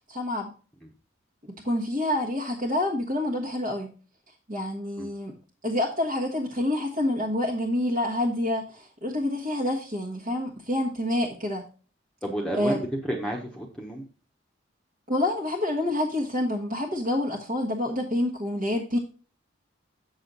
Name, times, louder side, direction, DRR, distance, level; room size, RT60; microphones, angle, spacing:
voice 1, 0.1-0.5 1.5-3.9 4.5-5.4 5.6-11.6 12.5-12.8 15.1-19.0, left 1 dB, 45° right, -4 dB, 1.3 m, -27 dB
voice 2, 12.2-14.0, right 1 dB, 5° left, -1 dB, 1.1 m, -31 dB
7.5 x 6.4 x 4.0 m, 0.37 s
head